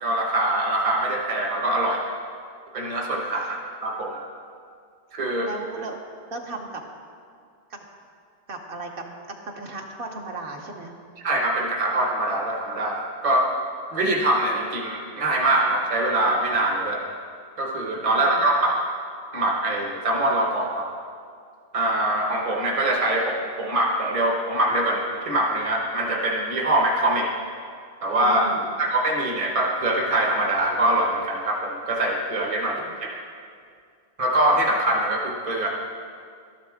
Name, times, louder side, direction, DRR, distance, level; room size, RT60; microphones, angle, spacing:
voice 1, 0.0-2.1 2.7-4.3 5.1-5.5 11.2-13.5 13.9-17.1 17.6-18.8 19.3-20.9 21.7-27.3 28.0-28.5 28.8-33.1 34.2-35.7, right 1 dB, 35° right, 0 dB, 1.0 m, -23 dB
voice 2, 5.4-6.0 6.3-6.8 7.7-7.8 8.5-9.0 9.4-10.9 18.1-18.4 28.2-28.7 32.6-32.9, right 2 dB, 65° right, 2 dB, 1.2 m, -36 dB
12.5 x 10.5 x 3.6 m, 2.2 s
omnidirectional pair, 1.0 m